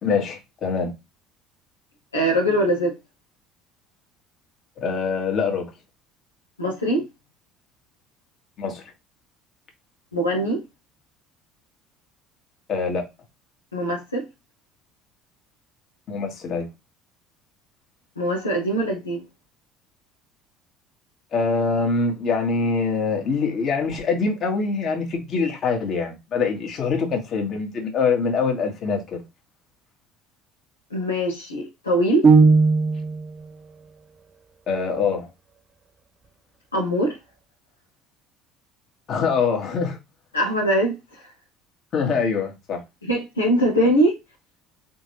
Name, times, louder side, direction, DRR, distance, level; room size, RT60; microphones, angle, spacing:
voice 1, 0.0-0.9 4.8-5.6 8.6-8.8 12.7-13.0 16.1-16.7 21.3-29.2 34.7-35.3 39.1-40.0 41.9-42.8, left 5 dB, 45° left, 1.7 m, -24 dB
voice 2, 2.1-2.9 6.6-7.0 10.1-10.6 13.7-14.2 18.2-19.2 30.9-32.3 36.7-37.2 40.3-41.3 43.1-44.2, right 1 dB, 90° left, 1.1 m, -22 dB
sound 1, 32.2-33.3, right 4 dB, 35° right, 0.6 m, -15 dB
4.3 x 3.6 x 3.0 m
figure-of-eight pair, 60°, 0 cm